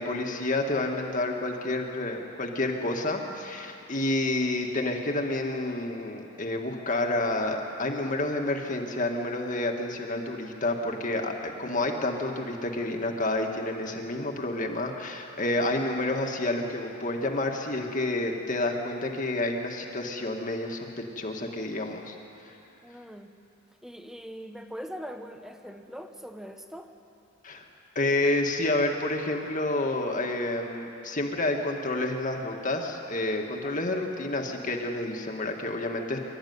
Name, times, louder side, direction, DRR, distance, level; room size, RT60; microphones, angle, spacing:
voice 1, 0.0-20.9 21.2-22.2 27.4-27.6 28.0-36.2, left 2 dB, 40° left, 2 dB, 1.8 m, -29 dB
voice 2, 22.8-23.3 23.8-26.9, equal, ahead, 6 dB, 1.0 m, -41 dB
25.5 x 13.5 x 9.5 m, 2.9 s
head